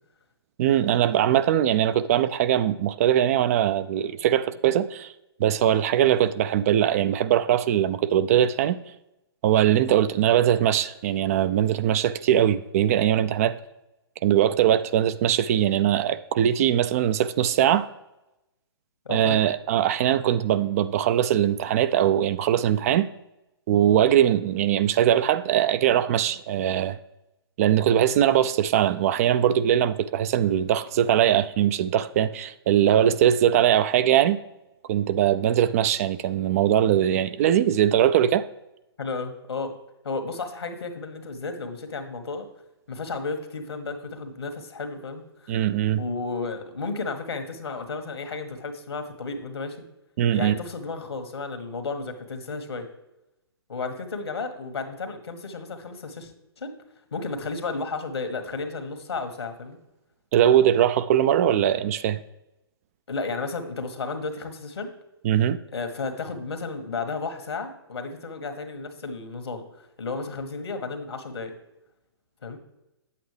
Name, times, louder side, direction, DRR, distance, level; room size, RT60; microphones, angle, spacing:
voice 1, 0.6-5.1 5.4-8.8 9.4-13.6 14.2-17.9 19.1-23.1 23.7-27.0 27.6-34.4 34.9-38.4 45.5-46.0 50.2-50.5 60.3-62.2 65.2-65.6, right 10 dB, 35° right, 0.4 m, -21 dB
voice 2, 19.0-19.4 39.0-39.8 40.0-42.5 42.9-45.6 46.0-49.8 50.3-52.9 53.7-56.3 56.6-56.8 57.1-59.8 63.1-64.9 65.7-69.6 70.0-71.5 72.4-72.6, left 4 dB, 75° left, 1.6 m, -33 dB
9.1 x 8.3 x 3.3 m
figure-of-eight pair, 130°, 14 cm